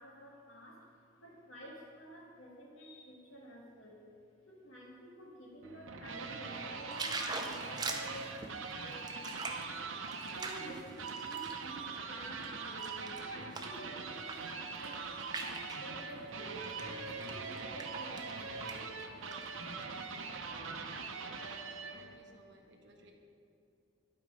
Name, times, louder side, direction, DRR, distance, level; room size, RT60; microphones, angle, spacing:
voice 1, 0.0-4.1 4.5-9.9 10.3-18.9 21.8-23.1, equal, 85° left, -2 dB, 1.7 m, -52 dB
sound 1, 5.6-22.1, right 4 dB, 85° right, 0.7 m, -42 dB
sound 2, 6.9-11.6 12.1-13.8 14.2-14.5 14.8-15.8 16.6-16.8 17.2-18.3 18.6-18.8 19.0-19.9 20.3-20.4, right 3 dB, 20° right, 0.5 m, -42 dB
voice 2, 21.2-23.1, right 1 dB, 60° right, 2 dB, 0.9 m, -60 dB
11.5 x 4.4 x 5.1 m, 2.5 s
head